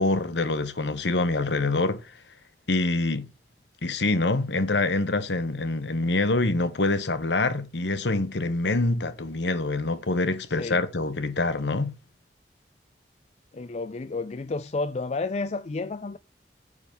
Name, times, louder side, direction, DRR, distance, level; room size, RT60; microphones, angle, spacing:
voice 1, 0.0-2.0 2.7-3.3 3.8-11.9, left 2 dB, 80° left, 1.1 m, -25 dB
voice 2, 13.5-16.2, left 3 dB, 40° left, 0.4 m, -31 dB
9.8 x 4.1 x 7.0 m
head